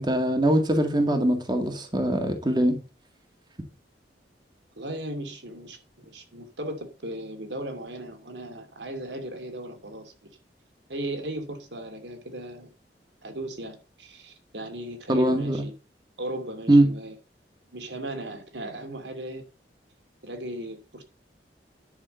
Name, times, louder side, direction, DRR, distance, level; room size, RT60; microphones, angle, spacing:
voice 1, 0.0-2.8 15.1-15.6 16.7-16.9, right 1 dB, 25° right, 1.8 m, -22 dB
voice 2, 4.8-10.1 10.9-12.7 13.2-15.7 16.2-17.1 17.7-19.4 20.2-21.0, right 1 dB, 80° right, 2.7 m, -37 dB
10.5 x 6.0 x 7.0 m
head